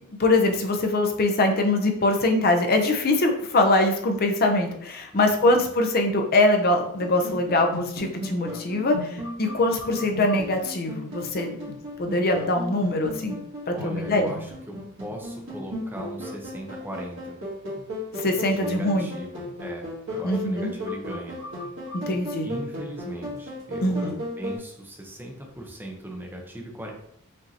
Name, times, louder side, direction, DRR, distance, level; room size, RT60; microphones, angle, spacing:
voice 1, 0.2-13.4 13.7-14.3 18.2-19.1 20.2-20.7 21.9-22.5 23.8-24.2, left 2 dB, 45° left, 4 dB, 0.6 m, -23 dB
voice 2, 5.1-5.7 13.7-17.4 18.5-21.4 22.4-26.9, right 1 dB, 10° right, 1 dB, 0.6 m, -38 dB
sound 1, 7.0-24.6, left 1 dB, 65° right, 1.6 m, -35 dB
5.1 x 2.7 x 2.8 m, 0.70 s
head